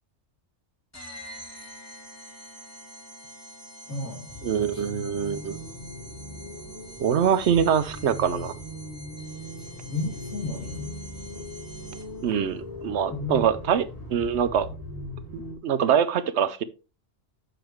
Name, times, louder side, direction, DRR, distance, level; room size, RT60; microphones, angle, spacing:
sound 1, 0.9-12.3, equal, 10° left, 1.6 m, -46 dB
voice 1, 3.9-4.9 5.2-5.3 9.6-10.9 13.1-13.6, left 2 dB, 80° left, 3.4 m, -34 dB
sound 2, 4.3-15.6, left 1 dB, 30° left, 2.5 m, -39 dB
voice 2, 4.4-5.6 7.0-8.5 12.2-13.8 14.1-14.7 15.3-16.6, right 8 dB, 65° right, 1.0 m, -24 dB
7.8 x 6.8 x 3.1 m
omnidirectional pair, 1.3 m